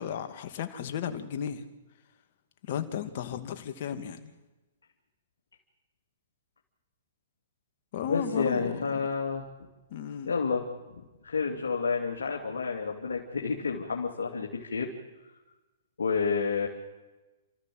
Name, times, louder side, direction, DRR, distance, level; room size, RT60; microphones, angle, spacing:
voice 1, 0.0-1.6 2.7-4.3 7.9-8.8 9.9-10.3, left 8 dB, 55° left, 8 dB, 2.4 m, -34 dB
voice 2, 8.1-9.5 10.3-14.9 16.0-16.7, left 5 dB, 85° left, 0 dB, 2.7 m, -30 dB
29.5 x 14.0 x 7.9 m, 1.1 s
hypercardioid pair, 130°, 0 cm